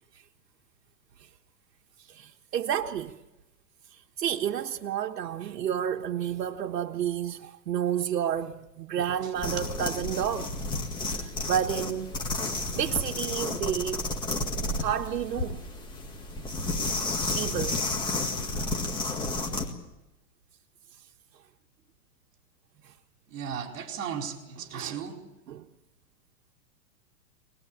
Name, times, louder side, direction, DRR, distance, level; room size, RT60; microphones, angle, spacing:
voice 1, 2.1-3.2 3.9-10.5 11.1-12.1 12.7-14.0 14.8-15.6 17.1-17.8 22.8-22.9 24.8-25.0 25.5-25.7, right 9 dB, 85° right, 1.4 m, -31 dB
sound 1, 9.4-19.7, left 2 dB, 10° left, 2.0 m, -31 dB
voice 2, 23.3-25.2, right 7 dB, 50° right, 4.4 m, -36 dB
24.5 x 20.0 x 8.7 m
hypercardioid pair, 160°, 48 cm